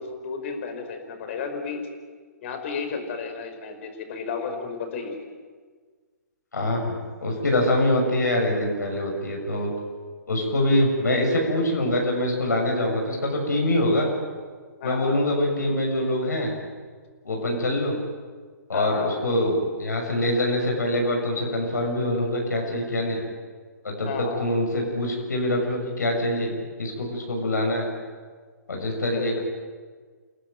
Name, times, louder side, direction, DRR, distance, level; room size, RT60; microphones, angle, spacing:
voice 1, 0.0-1.8 2.4-5.2 14.8-15.1 18.7-19.1 24.0-24.4 29.2-29.4, left 5 dB, 45° left, 6 dB, 5.2 m, -32 dB
voice 2, 6.5-7.0 7.2-9.7 10.3-14.1 14.8-16.5 17.2-17.9 18.7-23.2 23.8-27.9 28.7-29.4, left 1 dB, 75° left, 0 dB, 6.8 m, -24 dB
29.0 x 18.5 x 9.2 m, 1.5 s
figure-of-eight pair, 125°, 10 cm